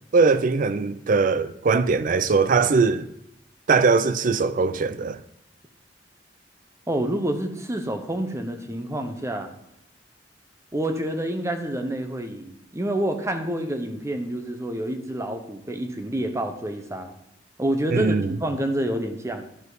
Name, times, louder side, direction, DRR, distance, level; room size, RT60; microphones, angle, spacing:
voice 1, 0.1-3.1 3.7-5.2 17.9-18.4, right 4 dB, 50° right, 0.4 m, -21 dB
voice 2, 6.9-9.5 10.7-17.1 17.6-19.4, right 1 dB, 15° right, 0.8 m, -28 dB
11.0 x 5.2 x 4.0 m
head